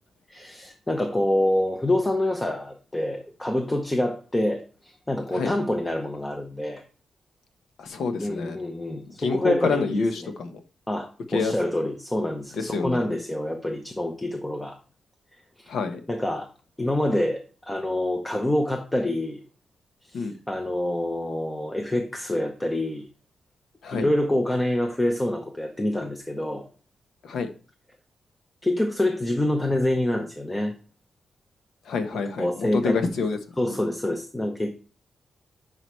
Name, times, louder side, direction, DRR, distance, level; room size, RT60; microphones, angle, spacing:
voice 1, 0.3-6.8 8.2-10.3 10.9-14.8 15.6-15.7 16.1-16.5 16.8-19.4 20.0-23.1 23.9-26.7 28.6-30.7 32.4-33.0 33.6-34.7, left 1 dB, 10° left, 0.8 m, -26 dB
voice 2, 7.8-8.6 9.1-10.6 11.3-11.5 12.6-13.1 15.7-16.0 20.1-20.3 23.8-24.1 27.2-27.5 31.9-33.4 33.7-33.8, left 4 dB, 80° left, 1.1 m, -27 dB
10.5 x 5.0 x 3.2 m
wide cardioid pair, 135°, 0 cm